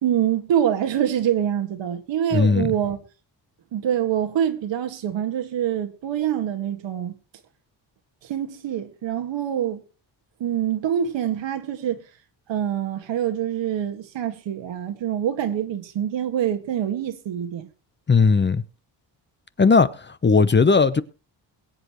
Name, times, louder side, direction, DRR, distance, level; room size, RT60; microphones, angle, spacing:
voice 1, 0.0-3.0 3.7-7.2 8.2-9.8 10.4-12.0 12.5-17.7, right 10 dB, 80° right, 2.0 m, -25 dB
voice 2, 2.3-2.7 18.1-18.6 19.6-21.0, left 4 dB, 25° left, 0.8 m, -17 dB
22.5 x 8.1 x 3.1 m
cardioid pair, 105°, 44 cm